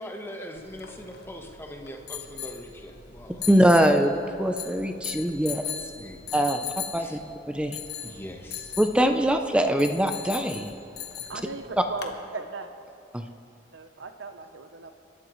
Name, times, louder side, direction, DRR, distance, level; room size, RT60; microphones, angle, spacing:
voice 1, 0.0-3.5 6.0-6.2 7.0-7.2 8.0-8.7, equal, 15° left, 2 dB, 1.2 m, -41 dB
sound 1, 0.6-12.1, left 9 dB, 60° left, 1.2 m, -39 dB
voice 2, 3.5-5.6 6.3-6.6 6.9-7.2 7.5-7.8 8.8-10.7 13.1-13.2, equal, 5° right, 6 dB, 0.6 m, -22 dB
voice 3, 11.3-12.7 13.7-15.0, right 3 dB, 70° right, 7 dB, 0.9 m, -37 dB
27.5 x 12.5 x 3.2 m, 2.8 s
head